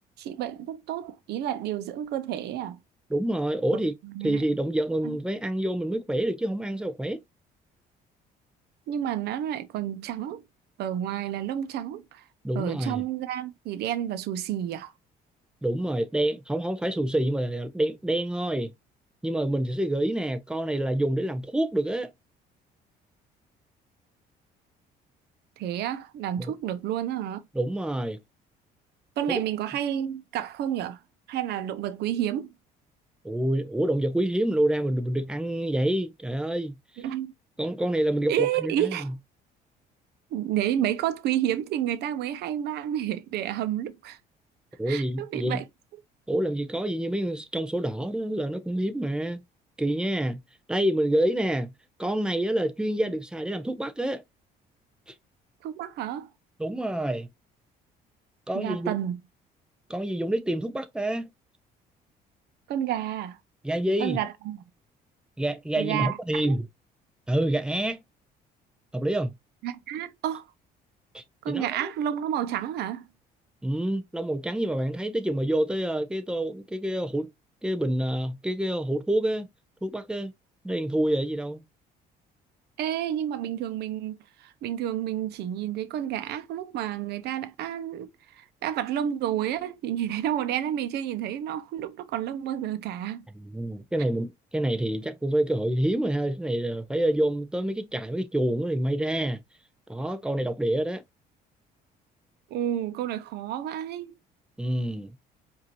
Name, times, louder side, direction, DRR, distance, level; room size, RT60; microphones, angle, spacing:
voice 1, 0.2-2.8 4.0-4.4 5.0-5.2 8.9-10.4 10.8-12.2 12.5-14.9 25.6-27.4 29.2-31.0 31.3-32.5 37.0-37.3 38.3-39.1 40.3-44.2 44.9-45.6 55.6-56.3 58.5-59.2 62.7-63.4 64.0-64.6 65.8-66.6 69.6-70.5 71.4-73.0 82.8-88.1 88.4-93.2 102.5-104.1, right 11 dB, 75° right, 0.8 m, -30 dB
voice 2, 3.1-3.9 4.2-7.2 12.4-13.0 15.6-18.7 19.2-22.1 26.4-26.5 27.5-28.2 29.3-29.4 33.2-37.0 37.6-39.1 44.8-45.6 46.3-49.4 49.8-50.4 50.7-51.7 52.0-54.2 56.6-57.3 58.5-59.0 59.9-61.3 63.6-64.2 65.4-66.7 67.3-68.0 68.9-69.3 71.1-71.9 73.6-77.3 77.6-79.5 79.8-80.3 80.6-81.6 93.3-99.4 99.9-101.0 104.6-105.2, right 1 dB, 5° right, 0.7 m, -27 dB
5.0 x 2.8 x 3.0 m
cardioid pair, 110°, 17 cm